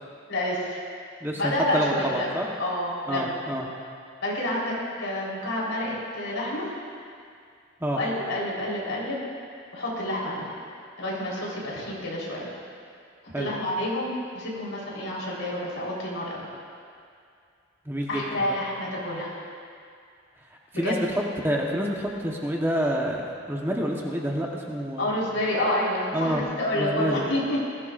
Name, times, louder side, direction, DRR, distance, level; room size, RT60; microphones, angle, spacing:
voice 1, 0.3-0.8 1.3-3.4 4.2-4.7 5.0-6.7 7.9-9.2 9.7-10.5 11.0-12.5 13.4-16.5 18.1-19.4 20.7-21.0 25.0-27.6, left 1 dB, 85° left, -5 dB, 4.0 m, -29 dB
voice 2, 1.2-2.4 3.1-3.7 7.8-8.0 13.3-13.5 17.9-18.5 20.8-21.1 21.4-25.1 26.1-26.4 26.7-27.2, equal, 10° right, -2 dB, 1.1 m, -28 dB
20.0 x 15.5 x 2.5 m, 2.3 s
head